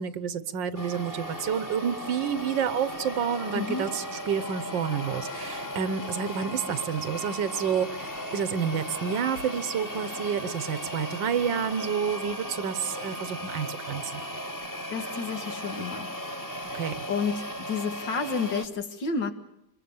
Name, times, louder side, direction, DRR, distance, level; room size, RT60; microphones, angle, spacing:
voice 1, 0.0-14.2 16.7-17.0, right 7 dB, 85° right, 15 dB, 1.8 m, -29 dB
sound 1, 0.8-18.7, equal, 10° left, 1.4 m, -36 dB
voice 2, 3.5-3.9 14.9-16.1 16.5-16.8 17.1-19.3, left 5 dB, 80° left, 7 dB, 2.6 m, -31 dB
27.5 x 21.5 x 7.2 m, 0.82 s
omnidirectional pair, 1.9 m